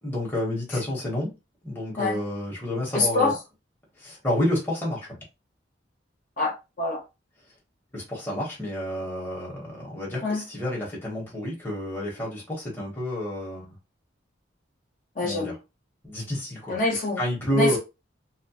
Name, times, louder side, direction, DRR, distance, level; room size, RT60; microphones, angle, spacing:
voice 1, 0.0-1.3 1.6-3.3 4.0-5.2 7.9-13.7 15.2-15.5 16.0-16.8 17.2-17.8, left 1 dB, 10° left, 1.0 m, -29 dB
voice 2, 2.9-3.3 6.4-7.0 10.2-10.4 15.2-15.5 16.7-17.2 17.5-17.8, left 3 dB, 45° left, 0.9 m, -25 dB
2.8 x 2.1 x 2.8 m
head